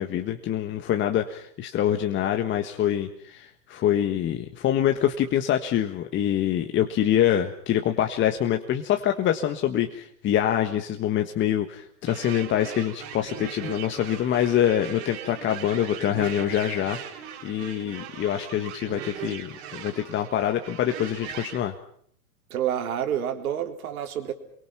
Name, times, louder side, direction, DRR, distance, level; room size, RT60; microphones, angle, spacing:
voice 1, 0.0-21.7, left 11 dB, 25° left, 5 dB, 1.5 m, -25 dB
sound 1, 12.1-21.6, right 10 dB, 45° right, 3.7 m, -39 dB
voice 2, 22.5-24.3, right 10 dB, 65° right, 6 dB, 3.7 m, -28 dB
30.0 x 23.0 x 5.8 m, 0.65 s
hypercardioid pair, 115°, 46 cm